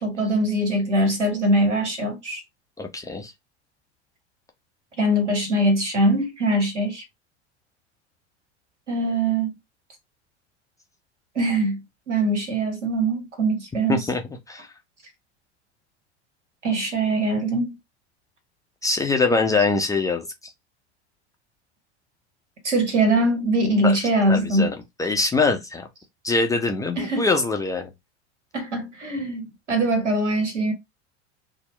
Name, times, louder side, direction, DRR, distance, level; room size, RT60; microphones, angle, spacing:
voice 1, 0.0-2.4 5.0-7.0 8.9-9.5 11.3-11.8 12.1-14.0 16.6-17.8 22.6-24.7 27.0-27.2 28.5-30.7, right 1 dB, 85° right, 1.1 m, -22 dB
voice 2, 2.8-3.3 13.9-14.2 14.5-14.7 18.8-20.5 23.8-24.0 24.3-25.9 26.2-27.9, left 3 dB, 10° left, 0.3 m, -23 dB
2.8 x 2.1 x 3.1 m
figure-of-eight pair, 80°, 35 cm